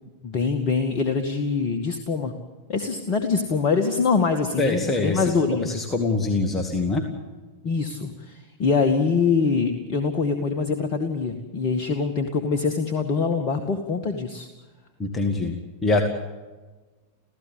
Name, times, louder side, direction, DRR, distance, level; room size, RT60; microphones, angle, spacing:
voice 1, 0.2-2.3 2.7-5.8 7.6-14.5, left 5 dB, 40° left, 6 dB, 2.1 m, -24 dB
voice 2, 4.6-5.3 5.6-7.1 15.0-16.1, left 3 dB, 15° left, 4 dB, 2.5 m, -24 dB
28.5 x 16.0 x 8.4 m, 1.3 s
figure-of-eight pair, 90°, 0 cm